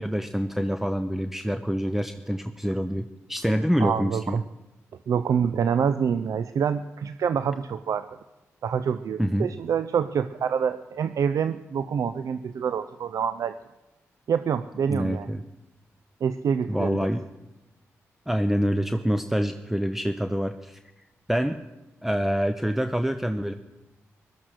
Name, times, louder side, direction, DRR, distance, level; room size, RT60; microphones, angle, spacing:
voice 1, 0.0-4.4 9.2-9.5 14.9-15.4 16.7-17.2 18.3-20.8 21.3-21.6 22.0-23.5, equal, 5° right, 9 dB, 0.8 m, -26 dB
voice 2, 3.8-4.4 5.1-8.1 8.6-13.6 14.3-15.4 16.2-17.1, right 7 dB, 70° right, 12 dB, 0.5 m, -26 dB
15.5 x 12.5 x 6.5 m, 1.0 s
supercardioid pair, 45°, 6 cm